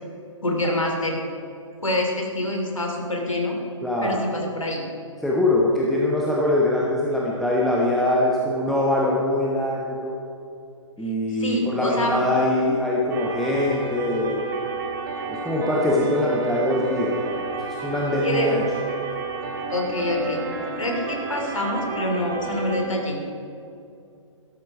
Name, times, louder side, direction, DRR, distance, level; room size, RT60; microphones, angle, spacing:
voice 1, 0.4-1.2 1.8-3.6 4.0-4.9 11.3-12.2 18.2-18.5 19.7-20.4 20.8-23.2, left 1 dB, 80° left, 2 dB, 2.8 m, -26 dB
voice 2, 3.8-4.2 5.2-10.1 11.0-14.5 15.3-17.4 17.8-18.6, left 1 dB, ahead, -4 dB, 1.0 m, -23 dB
sound 1, 13.1-22.8, right 5 dB, 40° right, 1.9 m, -31 dB
13.0 x 12.5 x 5.0 m, 2.6 s
figure-of-eight pair, 130°, 17 cm